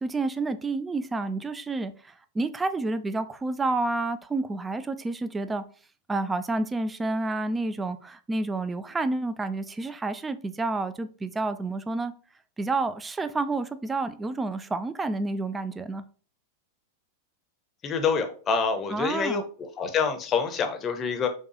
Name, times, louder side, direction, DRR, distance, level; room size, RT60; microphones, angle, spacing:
voice 1, 0.0-5.6 6.1-12.1 12.6-16.0 18.9-19.4, right 2 dB, 15° right, 0.3 m, -29 dB
voice 2, 17.8-19.4 19.8-21.3, left 5 dB, 25° left, 0.7 m, -26 dB
4.5 x 2.3 x 2.8 m
figure-of-eight pair, 90°, 0 cm